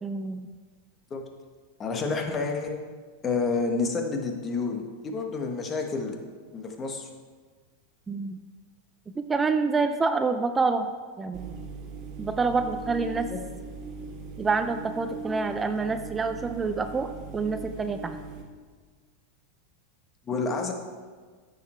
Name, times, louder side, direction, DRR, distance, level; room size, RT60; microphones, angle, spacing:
voice 1, 0.0-0.5 8.1-8.4 9.2-10.9 11.2-11.6 12.2-13.3 14.4-18.2, right 4 dB, 20° right, 8 dB, 0.5 m, -27 dB
voice 2, 1.8-2.8 3.2-6.2 6.5-7.1 13.3-13.4 20.3-20.7, left 4 dB, 30° left, 4 dB, 1.4 m, -29 dB
sound 1, 11.3-18.4, right 4 dB, 45° right, 1.7 m, -40 dB
9.7 x 6.7 x 4.4 m, 1.5 s
hypercardioid pair, 105°, 0 cm